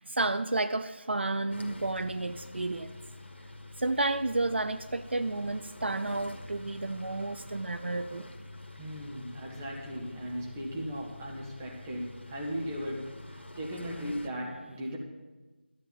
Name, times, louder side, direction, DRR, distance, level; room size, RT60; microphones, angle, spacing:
voice 1, 0.1-2.9 3.8-8.3, right 2 dB, 70° right, 12 dB, 0.6 m, -31 dB
sound 1, 1.5-14.3, left 2 dB, 80° left, 1.6 m, -47 dB
voice 2, 8.8-15.0, equal, 15° right, -2 dB, 1.6 m, -37 dB
12.5 x 8.0 x 7.3 m, 1.2 s
figure-of-eight pair, 170°, 6 cm